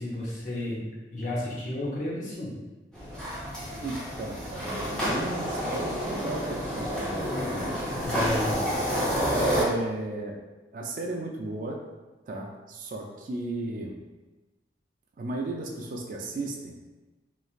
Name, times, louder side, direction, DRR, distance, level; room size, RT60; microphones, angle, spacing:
voice 1, 0.0-2.6 8.0-8.6, left 1 dB, 45° left, -5 dB, 0.7 m, -32 dB
sound 1, 2.9-9.6, equal, 5° left, 0.7 m, -29 dB
voice 2, 3.8-8.0 9.4-10.4 10.7-11.8 12.3-14.0 15.2-16.8, right 2 dB, 45° right, 1 dB, 0.3 m, -35 dB
3.1 x 2.4 x 2.4 m, 1.1 s
head